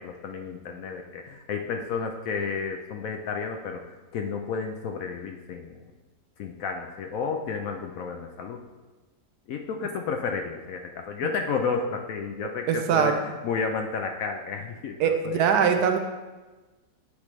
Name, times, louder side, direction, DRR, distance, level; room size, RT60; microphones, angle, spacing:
voice 1, 0.0-3.8 4.1-5.8 6.4-8.6 9.5-15.4, left 5 dB, 70° left, 4 dB, 0.9 m, -31 dB
voice 2, 12.7-13.2 15.0-16.0, right 7 dB, 75° right, 6 dB, 1.1 m, -22 dB
8.3 x 5.0 x 3.1 m, 1.2 s
omnidirectional pair, 1.8 m